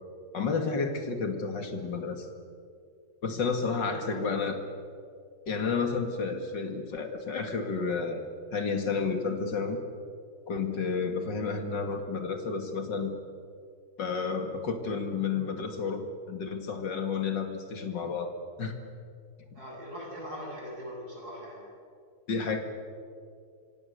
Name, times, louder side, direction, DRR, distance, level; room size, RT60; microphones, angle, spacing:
voice 1, 0.3-2.3 3.2-4.6 5.5-9.8 10.5-13.1 14.0-18.3 18.6-18.8 22.3-22.6, left 5 dB, 55° left, 5 dB, 2.9 m, -31 dB
voice 2, 3.4-4.2 19.5-21.7, equal, 45° right, -3 dB, 8.6 m, -42 dB
25.5 x 25.5 x 6.9 m, 2.3 s
omnidirectional pair, 2.4 m